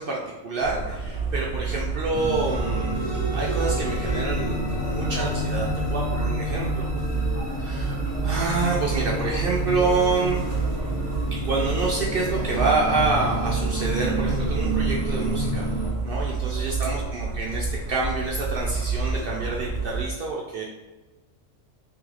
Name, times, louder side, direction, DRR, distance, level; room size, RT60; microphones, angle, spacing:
voice 1, 0.0-3.0 3.3-6.9 7.6-8.0 8.2-10.4 11.3-15.7 16.0-20.6, right 3 dB, 60° right, -3 dB, 0.6 m, -27 dB
sound 1, 0.6-20.0, right 4 dB, 35° right, 1.4 m, -29 dB
sound 2, 2.1-15.9, equal, 25° left, 0.6 m, -30 dB
3.4 x 3.1 x 3.7 m, 1.1 s
omnidirectional pair, 1.3 m